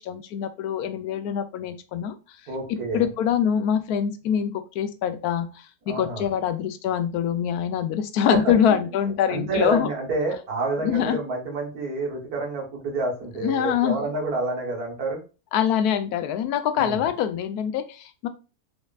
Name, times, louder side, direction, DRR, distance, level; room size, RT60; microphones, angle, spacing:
voice 1, 0.0-2.2 2.7-9.9 10.8-11.2 13.4-14.0 15.5-18.3, left 9 dB, 90° left, 10 dB, 1.1 m, -24 dB
voice 2, 2.5-3.1 5.9-6.3 8.3-8.4 8.7-15.2 16.8-17.0, right 2 dB, 80° right, 0 dB, 1.9 m, -29 dB
5.2 x 4.0 x 2.3 m, 0.32 s
omnidirectional pair, 1.6 m